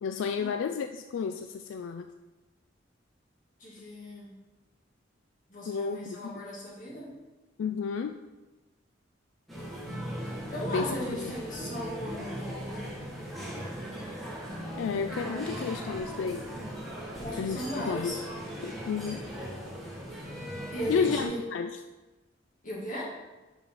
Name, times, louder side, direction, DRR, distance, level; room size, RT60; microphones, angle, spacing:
voice 1, 0.0-2.1 5.7-6.4 7.6-8.2 10.7-11.3 14.7-16.5 17.4-18.2 18.6-19.3 20.9-21.7, left 5 dB, 85° left, 7 dB, 0.3 m, -32 dB
voice 2, 3.6-4.3 5.5-7.1 10.5-12.9 17.2-18.2 20.7-21.4 22.6-23.1, equal, 45° left, -6 dB, 2.4 m, -37 dB
sound 1, 9.5-21.3, equal, ahead, 1.5 m, -38 dB
6.1 x 5.0 x 5.4 m, 1.1 s
head